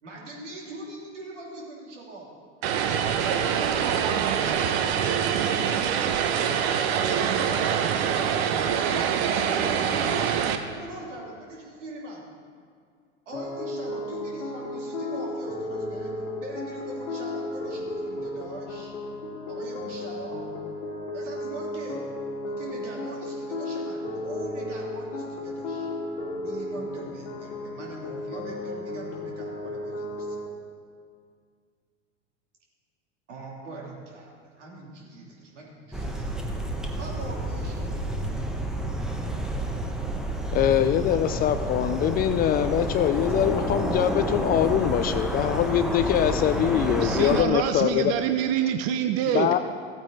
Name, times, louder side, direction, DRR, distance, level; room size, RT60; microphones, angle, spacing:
voice 1, 0.0-2.3 3.2-4.4 8.5-12.2 13.3-18.9 19.5-20.5 21.1-25.9 26.4-30.4 33.3-34.3 34.6-36.3 36.9-38.1, right 2 dB, 80° right, -3 dB, 3.0 m, -41 dB
Vehicle, 2.6-10.6, right 8 dB, 60° right, 1.0 m, -25 dB
sound 1, 13.3-30.5, left 1 dB, 70° left, 1.7 m, -34 dB
sound 2, 35.9-47.4, right 1 dB, ahead, 0.9 m, -29 dB
voice 2, 40.5-48.1 49.3-49.6, left 10 dB, 25° left, 10 dB, 0.4 m, -23 dB
voice 3, 47.0-49.6, right 10 dB, 40° right, 7 dB, 0.6 m, -26 dB
15.0 x 8.8 x 4.0 m, 2.1 s
hypercardioid pair, 95°, 36 cm